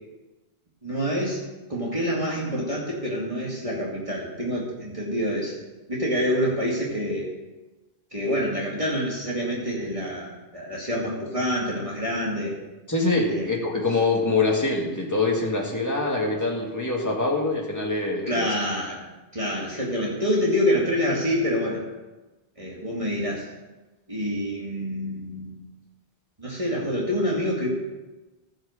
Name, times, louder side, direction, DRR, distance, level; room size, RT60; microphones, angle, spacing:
voice 1, 0.8-1.4 1.7-5.5 5.9-7.3 8.1-12.5 13.3-13.5 18.3-19.1 19.3-21.8 22.6-23.5 24.1-25.6 26.4-27.7, equal, 30° right, -5 dB, 2.4 m, -27 dB
voice 2, 12.9-18.5, left 3 dB, 15° left, -2 dB, 2.1 m, -24 dB
15.0 x 6.4 x 6.6 m, 1.1 s
omnidirectional pair, 1.1 m